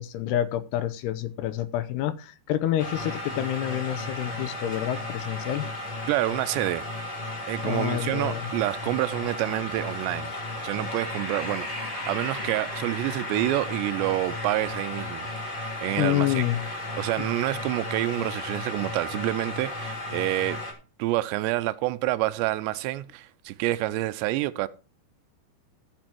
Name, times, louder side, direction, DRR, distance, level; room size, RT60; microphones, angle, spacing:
voice 1, 0.0-5.7 7.6-8.5 16.0-16.6, left 12 dB, 80° left, 2.7 m, -28 dB
sound 1, 2.8-20.7, left 2 dB, 15° left, 1.9 m, -34 dB
voice 2, 6.1-6.9 7.5-10.3 10.6-15.3 15.8-16.4 17.0-20.6 21.0-24.7, right 17 dB, 85° right, 2.8 m, -28 dB
14.0 x 6.1 x 4.5 m
omnidirectional pair, 5.0 m